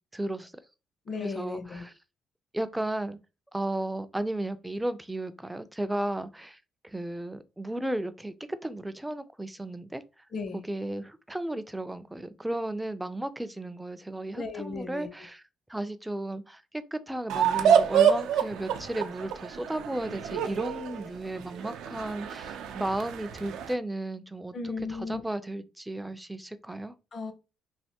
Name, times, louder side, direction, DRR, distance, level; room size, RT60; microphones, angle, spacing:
voice 1, 0.1-0.5 1.2-1.9 2.5-3.2 3.5-10.2 10.5-15.4 15.7-24.6 24.9-26.9, right 1 dB, 5° right, 0.3 m, -34 dB
voice 2, 1.1-1.8 10.3-10.6 14.3-15.1 24.5-25.2 27.1-27.3, left 4 dB, 45° left, 0.6 m, -35 dB
sound 1, 17.3-23.7, right 8 dB, 90° right, 0.4 m, -27 dB
3.3 x 2.5 x 2.8 m
cardioid pair, 125°, 0 cm